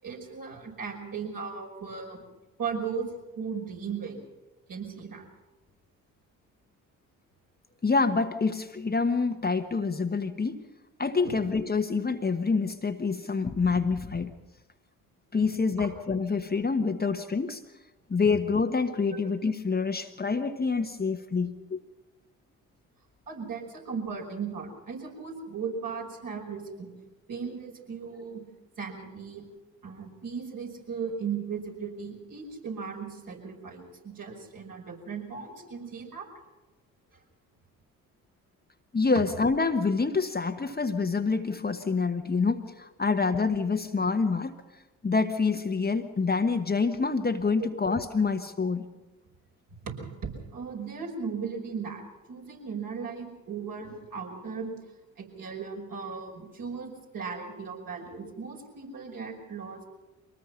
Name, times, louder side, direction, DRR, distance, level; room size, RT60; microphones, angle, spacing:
voice 1, 0.0-2.3 2.6-3.1 3.4-4.2 4.7-5.3 11.2-11.4 15.8-15.9 23.3-26.9 27.3-28.4 28.8-29.4 29.8-36.3 37.1-37.2 48.2-48.3 49.8-54.7 55.2-59.8, right 5 dB, 55° right, 0 dB, 5.7 m, -37 dB
voice 2, 7.8-10.6 11.0-14.3 15.3-17.6 18.1-21.8 38.9-44.6 45.0-48.9, left 4 dB, 25° left, 6 dB, 1.3 m, -27 dB
23.5 x 19.5 x 5.8 m, 1.1 s
hypercardioid pair, 50°, 40 cm